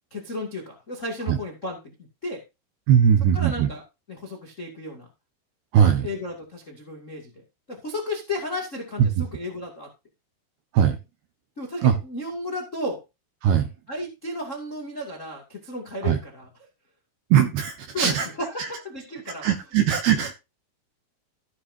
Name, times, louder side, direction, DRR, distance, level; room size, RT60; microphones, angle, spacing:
voice 1, 0.1-1.9 2.2-2.4 3.3-3.8 4.1-5.1 6.0-7.4 7.7-9.9 11.6-13.0 13.9-16.7 17.9-19.5, left 1 dB, 35° left, 1.1 m, -33 dB
voice 2, 2.9-3.7 5.7-6.1 9.0-9.1 10.7-11.0 11.8-12.0 13.4-13.7 16.0-16.2 17.3-18.3 19.4-20.3, right 8 dB, 70° right, 2.6 m, -19 dB
15.0 x 9.1 x 2.8 m
omnidirectional pair, 5.9 m